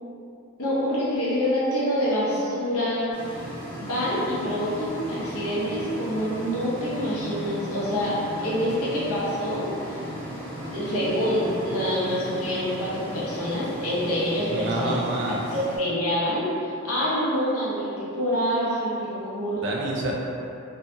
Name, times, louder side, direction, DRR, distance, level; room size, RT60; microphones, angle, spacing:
voice 1, 0.6-3.1 3.8-10.0 10.7-15.0 15.5-19.6, equal, 85° left, -8 dB, 0.8 m, -26 dB
sound 1, 3.1-15.8, equal, 10° left, 0.5 m, -36 dB
voice 2, 14.5-15.4 19.6-20.1, right 1 dB, 55° right, -2 dB, 0.4 m, -27 dB
2.7 x 2.6 x 2.2 m, 2.7 s
head